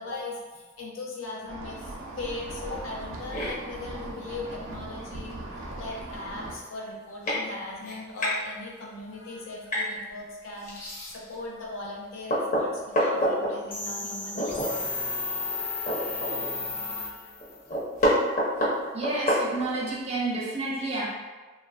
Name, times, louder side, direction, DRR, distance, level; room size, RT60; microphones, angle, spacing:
voice 1, 0.0-5.3 5.8-14.8, left 2 dB, 90° left, -3 dB, 0.6 m, -39 dB
sound 1, 1.5-6.5, right 2 dB, 75° right, 0.5 m, -39 dB
sound 2, 3.3-3.5 5.0-5.1 5.6-5.7 5.9-6.2 6.8-6.9 7.2-7.4 7.8-8.4 9.7-9.9 10.6-11.4 11.8-11.9 12.3-13.5 14.3-14.7 15.1-15.2 15.5-16.7 17.0-17.1 17.4-19.9, equal, 40° left, 0.7 m, -27 dB
sound 3, 13.7-17.6, left 3 dB, 10° left, 0.4 m, -33 dB
voice 2, 18.9-21.1, right 2 dB, 30° right, -4 dB, 0.6 m, -30 dB
2.9 x 2.3 x 2.3 m, 1.3 s
head